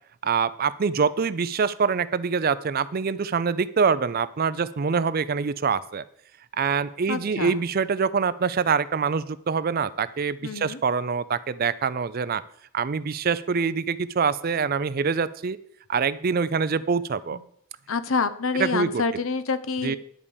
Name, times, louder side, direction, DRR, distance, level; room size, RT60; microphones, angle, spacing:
voice 1, 0.2-6.0 6.6-12.4 12.7-15.6 15.9-17.4 18.6-19.0 19.8-20.0, right 5 dB, 45° right, 16 dB, 0.4 m, -25 dB
voice 2, 7.1-7.6 10.4-10.8 17.9-20.0, left 4 dB, 70° left, 13 dB, 0.7 m, -27 dB
11.0 x 4.9 x 7.1 m, 0.66 s
head